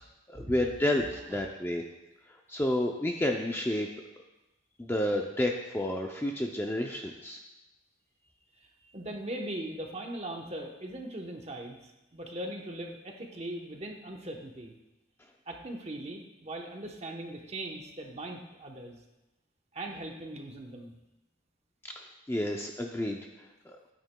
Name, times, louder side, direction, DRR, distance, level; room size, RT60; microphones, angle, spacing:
voice 1, 0.3-1.8 2.5-3.9 4.8-7.4 22.0-23.2 23.7-23.8, left 1 dB, 10° left, 2 dB, 0.4 m, -30 dB
voice 2, 8.9-14.7 15.5-19.0 19.7-20.9, right 1 dB, 30° right, 1 dB, 0.9 m, -40 dB
12.0 x 9.2 x 2.2 m, 1.0 s
head